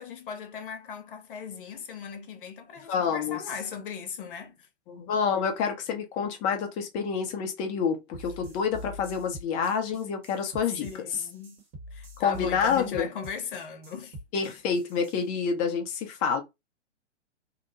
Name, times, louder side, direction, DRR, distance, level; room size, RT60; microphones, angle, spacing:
voice 1, 0.0-4.7 10.8-11.6 11.9-14.2, left 6 dB, 50° left, 0.8 m, -38 dB
voice 2, 2.9-3.4 4.9-10.9 12.2-13.1 14.3-16.4, left 6 dB, 20° left, 0.5 m, -28 dB
sound 1, 8.1-15.2, equal, 20° right, 0.9 m, -44 dB
2.8 x 2.0 x 3.8 m
figure-of-eight pair, 120°, 35 cm